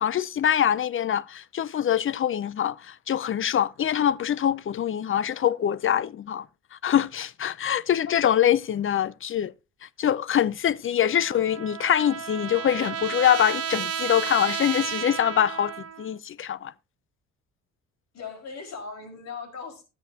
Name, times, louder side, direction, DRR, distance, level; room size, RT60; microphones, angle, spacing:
voice 1, 0.0-6.5 6.7-9.5 9.8-15.7 16.0-16.7, left 10 dB, 45° left, 0.5 m, -24 dB
Trumpet, 11.0-16.1, right 8 dB, 50° right, 1.0 m, -32 dB
voice 2, 18.1-19.8, left 5 dB, 60° left, 4.9 m, -38 dB
19.0 x 7.0 x 2.8 m
cardioid pair, 90°, 30 cm